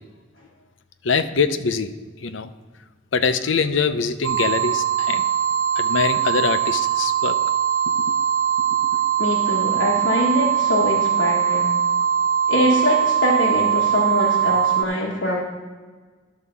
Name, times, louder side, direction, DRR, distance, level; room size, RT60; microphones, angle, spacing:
voice 1, 1.0-1.9 2.2-2.5 3.1-5.2 5.8-7.4 8.9-9.0, left 5 dB, 85° left, 11 dB, 0.6 m, -23 dB
sound 1, 4.2-14.9, right 9 dB, 90° right, 0.3 m, -21 dB
voice 2, 9.2-11.7 12.5-15.4, left 1 dB, 65° left, -4 dB, 1.4 m, -23 dB
11.0 x 4.9 x 6.9 m, 1.4 s
head